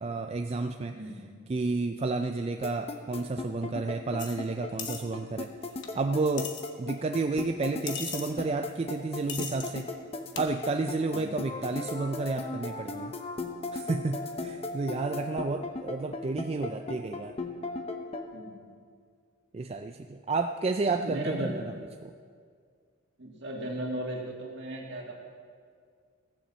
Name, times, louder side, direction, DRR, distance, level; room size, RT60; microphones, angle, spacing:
voice 1, 0.0-1.0 1.5-5.5 5.9-9.9 10.4-13.1 13.7-17.3 19.5-21.7 22.0-22.1, right 3 dB, 30° right, 6 dB, 0.3 m, -31 dB
voice 2, 0.9-1.4 11.1-11.4 18.3-18.8 21.0-21.5 23.2-25.1, right 1 dB, 55° right, -2 dB, 2.3 m, -36 dB
sound 1, 2.6-18.2, left 2 dB, 30° left, 0.8 m, -36 dB
sound 2, 4.2-4.4 4.8-5.0 5.8-5.9 6.4-6.6 7.9-8.3 9.3-9.7 10.4-10.5, left 7 dB, 55° left, 1.2 m, -37 dB
15.5 x 7.0 x 7.4 m, 2.1 s
head